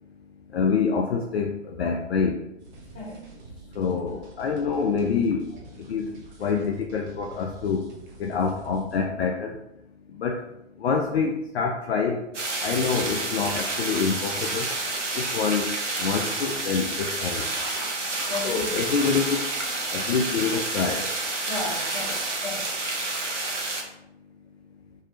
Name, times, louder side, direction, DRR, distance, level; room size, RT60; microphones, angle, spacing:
voice 1, 0.5-1.5 1.8-2.4 3.8-5.4 5.9-6.1 6.4-7.8 8.2-9.5 10.2-10.4 10.8-12.2 12.6-14.7 15.2-15.7 16.0-17.4 18.4-19.4 19.9-21.1, left 5 dB, 60° left, 1 dB, 0.4 m, -26 dB
sound 1, 2.6-9.0, right 3 dB, 40° right, 0.8 m, -47 dB
sound 2, 12.3-23.8, right 2 dB, 80° right, 0.8 m, -29 dB
voice 2, 18.2-19.1 21.5-22.7, left 2 dB, 15° left, -8 dB, 1.5 m, -35 dB
3.1 x 2.7 x 2.8 m, 0.85 s
figure-of-eight pair, 110°, 36 cm